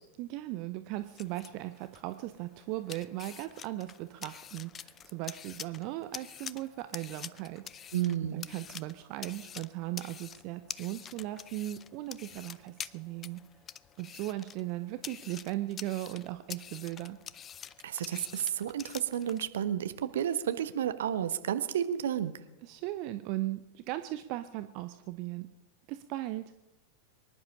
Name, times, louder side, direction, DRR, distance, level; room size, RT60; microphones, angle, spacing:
voice 1, 0.2-7.9 8.3-13.4 14.0-17.2 22.6-25.5 25.9-26.5, right 16 dB, 45° right, 11 dB, 0.7 m, -38 dB
sound 1, 0.9-19.5, left 8 dB, 25° left, 0.5 m, -47 dB
voice 2, 7.9-8.5 17.8-22.4, right 10 dB, 60° right, 11 dB, 1.0 m, -31 dB
24.0 x 11.0 x 5.6 m, 0.97 s
figure-of-eight pair, 90°, 0 cm